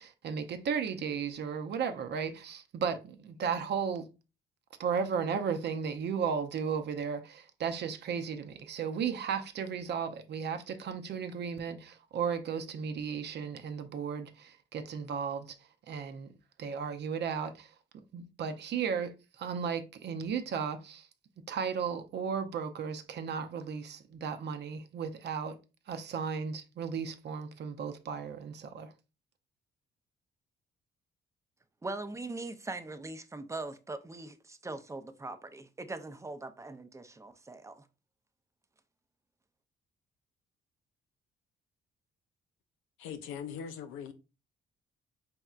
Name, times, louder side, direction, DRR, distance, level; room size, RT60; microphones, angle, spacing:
voice 1, 0.0-4.1 4.8-15.6 15.9-16.3 16.6-17.7 18.1-21.1 21.5-25.6 25.9-28.9, right 6 dB, 60° right, 0.6 m, -35 dB
voice 2, 31.8-37.9, right 2 dB, 15° right, 0.5 m, -41 dB
voice 3, 43.0-44.1, left 7 dB, 90° left, 0.6 m, -40 dB
4.2 x 3.5 x 2.4 m
cardioid pair, 90°, 20 cm